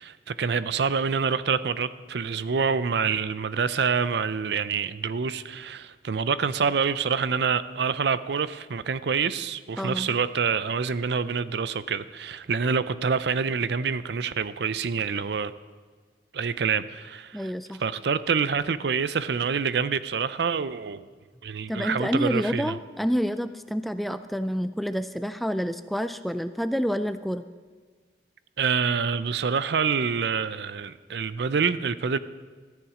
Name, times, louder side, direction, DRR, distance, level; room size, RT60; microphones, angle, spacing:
voice 1, 0.0-15.5 16.3-17.5 17.8-21.0 21.4-22.8 28.6-32.2, right 6 dB, 65° right, 15 dB, 0.5 m, -26 dB
voice 2, 9.8-10.1 17.3-17.8 21.7-27.4, equal, ahead, 11 dB, 0.3 m, -28 dB
14.0 x 10.0 x 5.0 m, 1.5 s
head